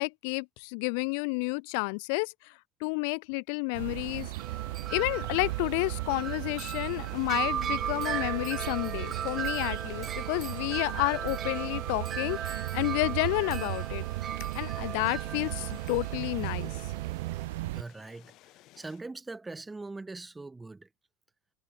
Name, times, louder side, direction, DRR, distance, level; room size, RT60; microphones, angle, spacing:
voice 1, 0.0-2.5 2.8-4.3 4.9-14.1 14.5-16.7, left 35 dB, 70° left, 0.6 m, -31 dB
sound 1, 3.7-17.8, right 20 dB, 80° right, 0.6 m, -36 dB
Wind chime, 4.1-17.5, right 8 dB, 30° right, 0.7 m, -37 dB
sound 2, 8.4-19.0, left 17 dB, 50° left, 7.5 m, -58 dB
voice 2, 17.7-18.3 18.8-20.9, right 3 dB, 10° right, 1.3 m, -41 dB
supercardioid pair, 115°, 0 cm